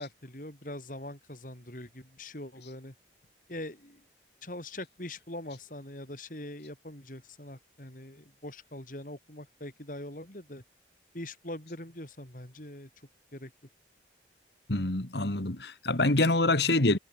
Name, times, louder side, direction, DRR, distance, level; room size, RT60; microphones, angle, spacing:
voice 1, 0.0-2.9 3.5-4.0 4.4-10.6 11.1-12.9 13.3-13.5, left 1 dB, 45° left, 4.7 m, -42 dB
voice 2, 14.7-17.0, left 2 dB, 70° left, 2.2 m, -26 dB
head